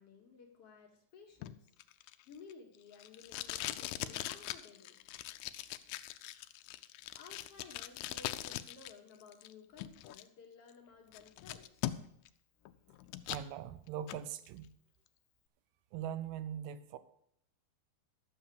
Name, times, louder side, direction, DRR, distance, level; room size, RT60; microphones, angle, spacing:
voice 1, 0.0-1.7 2.0-5.0 7.2-11.8, left 5 dB, 55° left, 2 dB, 1.7 m, -56 dB
Packing tape duct tape, 1.4-8.9 9.2-10.2 10.7-10.8 11.1-12.3 12.7-13.5 13.9-14.2, left 14 dB, 90° left, 2.6 m, -42 dB
voice 2, 13.3-14.7 15.9-17.0, right 10 dB, 85° right, 13 dB, 2.7 m, -41 dB
12.0 x 7.3 x 6.7 m, 0.69 s
omnidirectional pair, 4.4 m